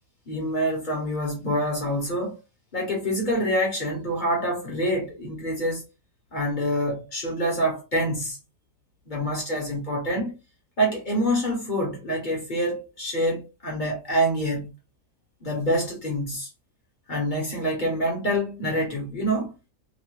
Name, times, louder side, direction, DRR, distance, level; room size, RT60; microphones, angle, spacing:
voice 1, 0.3-2.3 2.7-5.8 6.3-8.4 9.1-10.3 10.8-14.7 15.4-16.5 17.1-19.5, equal, 35° left, 0.9 m, -26 dB
3.1 x 2.1 x 2.9 m
omnidirectional pair, 1.7 m